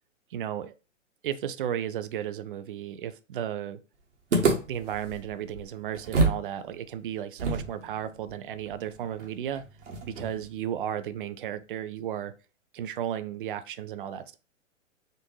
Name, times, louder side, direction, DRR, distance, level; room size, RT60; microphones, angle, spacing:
voice 1, 0.3-0.7 1.2-3.8 4.7-9.6 10.1-12.3 12.7-14.4, right 10 dB, 45° right, 0.5 m, -34 dB
sound 1, 4.3-6.5 6.7-6.8 7.4-10.5, right 3 dB, 65° right, 1.3 m, -29 dB
4.3 x 2.6 x 3.1 m
figure-of-eight pair, 115°, 38 cm